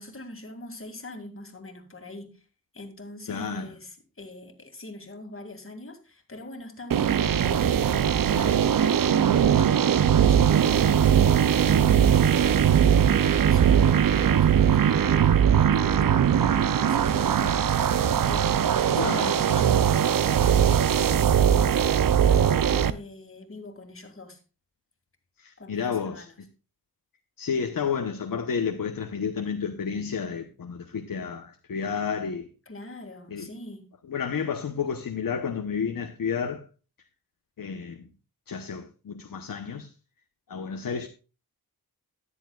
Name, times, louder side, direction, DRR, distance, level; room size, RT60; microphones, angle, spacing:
voice 1, 0.0-2.3 2.7-8.0 8.3-24.4 25.6-26.4 32.7-33.9, left 2 dB, 35° left, 2.4 m, -43 dB
voice 2, 3.3-3.7 19.0-19.4 25.4-26.5 27.4-32.5 33.3-33.5 34.1-36.7 37.6-38.1 38.5-39.9 40.5-41.1, left 6 dB, 60° left, 1.0 m, -31 dB
sound 1, 6.9-22.9, right 8 dB, 60° right, 0.6 m, -20 dB
14.0 x 10.0 x 2.4 m
wide cardioid pair, 75°, 37 cm